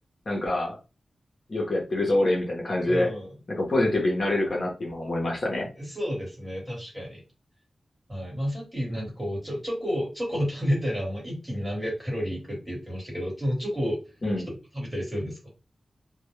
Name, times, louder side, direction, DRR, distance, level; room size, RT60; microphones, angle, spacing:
voice 1, 0.3-0.8 1.5-3.1 3.5-5.7 14.2-14.5, left 1 dB, 45° left, -1 dB, 0.7 m, -25 dB
voice 2, 2.8-3.4 5.8-7.2 8.1-14.0 14.7-15.5, equal, 15° right, -3 dB, 1.3 m, -30 dB
2.2 x 2.0 x 3.0 m, 0.30 s
wide cardioid pair, 120°, 0 cm